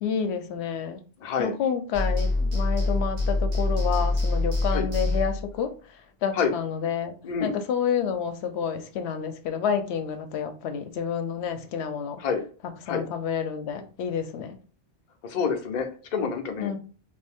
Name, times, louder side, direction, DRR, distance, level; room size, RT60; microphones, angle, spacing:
voice 1, 0.0-1.0 1.4-7.2 7.4-12.2 12.9-14.6 16.6-16.8, left 7 dB, 90° left, 8 dB, 0.8 m, -29 dB
voice 2, 1.2-1.5 4.7-4.9 6.3-6.5 7.2-7.6 12.2-12.4 12.9-13.0 15.2-16.7, left 6 dB, 50° left, 4 dB, 0.7 m, -27 dB
sound 1, 1.9-5.5, left 2 dB, 65° right, 1.4 m, -25 dB
3.1 x 2.6 x 3.4 m, 0.39 s
omnidirectional pair, 1.1 m